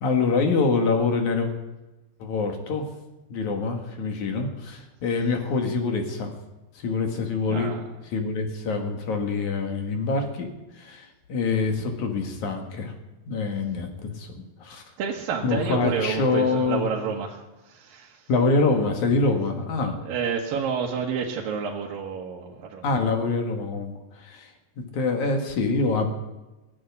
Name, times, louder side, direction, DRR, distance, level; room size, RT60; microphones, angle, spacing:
voice 1, 0.0-1.5 2.2-2.9 3.3-6.3 6.8-7.7 8.1-10.5 10.7-12.9 13.3-14.8 15.4-16.9 18.3-20.0 22.8-24.5 24.8-26.1, left 4 dB, 60° left, 4 dB, 3.1 m, -25 dB
voice 2, 7.5-7.8 15.0-18.3 20.1-22.9, right 6 dB, 80° right, -1 dB, 3.0 m, -29 dB
18.0 x 7.9 x 9.7 m, 1.1 s
omnidirectional pair, 4.0 m